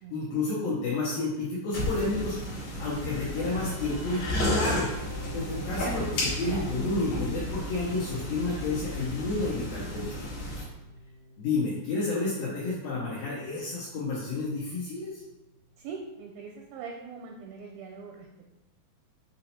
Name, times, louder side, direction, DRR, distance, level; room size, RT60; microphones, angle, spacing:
voice 1, 0.1-2.4 2.8-4.9 5.3-10.3 10.6-10.7 11.4-15.2, left 3 dB, 75° left, -6 dB, 2.2 m, -30 dB
sound 1, 1.7-10.6, left 1 dB, 60° left, 2.1 m, -33 dB
sound 2, 3.3-16.2, right 1 dB, 60° right, 0.9 m, -47 dB
voice 2, 15.8-18.4, right 5 dB, 85° right, 2 dB, 2.2 m, -42 dB
6.5 x 2.8 x 2.8 m, 0.93 s
omnidirectional pair, 4.6 m